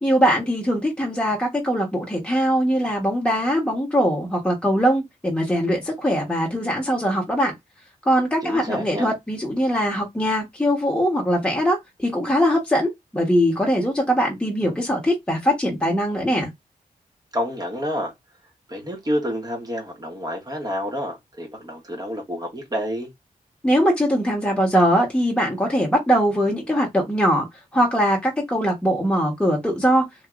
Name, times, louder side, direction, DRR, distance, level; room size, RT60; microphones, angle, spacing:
voice 1, 0.0-7.5 8.1-16.5 23.6-27.5 27.7-30.1, equal, 5° left, 1.0 m, -21 dB
voice 2, 8.4-9.1 17.3-18.1 18.7-23.1, equal, 25° right, 1.2 m, -29 dB
2.9 x 2.7 x 2.4 m
wide cardioid pair, 110°, 14 cm